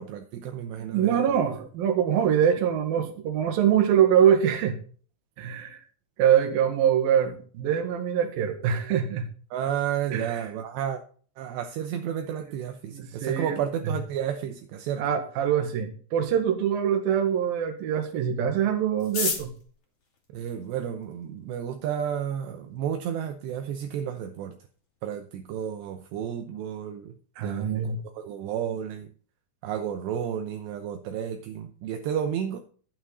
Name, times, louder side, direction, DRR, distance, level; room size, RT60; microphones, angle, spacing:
voice 1, 0.0-1.4 9.5-11.0 11.4-15.0 20.3-24.6 25.0-29.1 29.6-32.6, right 9 dB, 80° right, 2.7 m, -32 dB
voice 2, 0.8-4.8 5.4-5.8 6.2-9.3 10.1-10.4 12.9-13.6 13.8-14.0 15.0-19.5 27.4-28.0, right 9 dB, 60° right, 2.9 m, -24 dB
sound 1, 19.0-21.2 22.0-22.1 22.3-22.4 22.7-23.2 23.5-23.6 23.8-24.2 24.5-24.7 25.1-25.4, left 5 dB, 40° left, 2.7 m, -33 dB
11.0 x 8.9 x 4.1 m
omnidirectional pair, 5.6 m